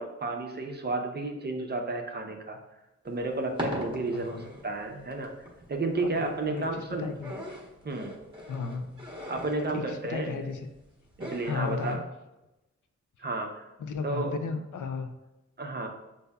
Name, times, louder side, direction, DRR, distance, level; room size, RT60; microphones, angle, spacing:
voice 1, 0.0-2.6 3.0-5.3 5.7-7.1 7.8-8.2 9.3-10.3 11.2-12.0 13.2-13.7 14.0-14.4 15.6-15.9, right 2 dB, 35° right, 3 dB, 0.5 m, -32 dB
sound 1, 3.1-12.0, equal, 15° right, 1.0 m, -41 dB
voice 2, 4.1-4.5 6.0-7.3 8.5-8.9 9.7-10.7 11.4-12.0 13.8-15.1, left 5 dB, 80° left, 7 dB, 0.5 m, -34 dB
6.6 x 2.7 x 2.2 m, 0.99 s
wide cardioid pair, 110°, 30 cm